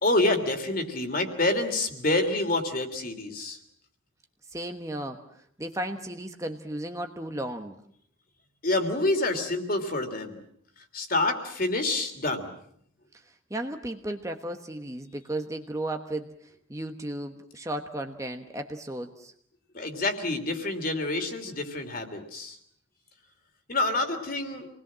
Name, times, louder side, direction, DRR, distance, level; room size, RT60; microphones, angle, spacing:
voice 1, 0.0-3.6 8.6-10.4 10.9-12.5 19.7-22.6 23.7-24.7, left 2 dB, 45° left, 5 dB, 3.1 m, -27 dB
voice 2, 4.5-5.2 5.6-7.8 13.1-13.2 13.5-16.3 16.7-19.3, right 1 dB, 15° right, 5 dB, 1.2 m, -34 dB
28.0 x 20.0 x 7.5 m, 0.67 s
head